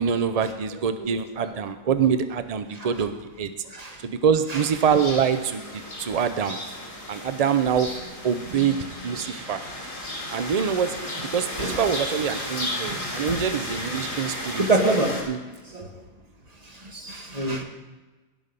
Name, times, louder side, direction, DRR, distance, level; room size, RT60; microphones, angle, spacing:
voice 1, 0.0-3.5 4.0-6.6 7.1-7.9 8.2-8.8 9.0-9.7 10.3-14.7 15.3-15.4, right 7 dB, 80° right, 10 dB, 0.3 m, -25 dB
voice 2, 3.6-4.0 4.5-4.6 11.6-11.8 14.6-15.3 15.7-15.9 16.6-17.6, right 2 dB, 30° right, 2 dB, 1.5 m, -26 dB
sound 1, 4.6-15.2, left 1 dB, 25° left, 2.5 m, -34 dB
17.5 x 6.1 x 5.3 m, 1.2 s
omnidirectional pair, 1.4 m